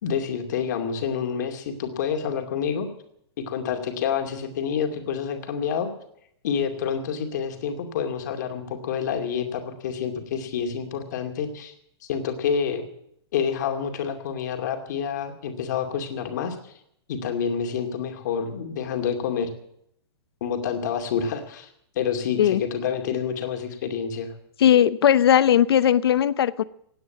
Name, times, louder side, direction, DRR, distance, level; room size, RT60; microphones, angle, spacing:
voice 1, 0.0-2.9 3.4-5.9 6.4-11.7 12.1-12.8 13.3-16.7 17.1-19.5 20.4-21.7 21.9-24.3, left 7 dB, 40° left, 4 dB, 2.4 m, -28 dB
voice 2, 24.6-26.6, left 10 dB, 60° left, 17 dB, 0.8 m, -18 dB
17.0 x 9.4 x 8.4 m, 0.73 s
hypercardioid pair, 180°, 14 cm